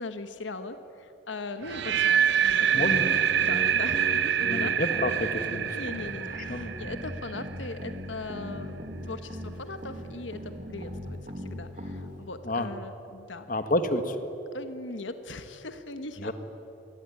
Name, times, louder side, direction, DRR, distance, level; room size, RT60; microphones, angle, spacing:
voice 1, 0.0-2.9 3.4-4.8 5.7-13.5 14.5-16.3, left 2 dB, 80° left, 9 dB, 1.4 m, -39 dB
Snare drum, 1.3-6.3, left 2 dB, 60° left, 2.5 m, -44 dB
sound 1, 1.6-7.7, right 9 dB, 65° right, 0.5 m, -26 dB
voice 2, 2.7-3.0 4.4-5.7 6.4-6.7 12.5-12.7 13.5-14.2 16.2-16.3, left 1 dB, 45° left, 9 dB, 1.6 m, -29 dB
sound 2, 2.7-12.2, equal, 40° right, 2.7 m, -39 dB
26.0 x 20.5 x 9.8 m, 2.9 s
head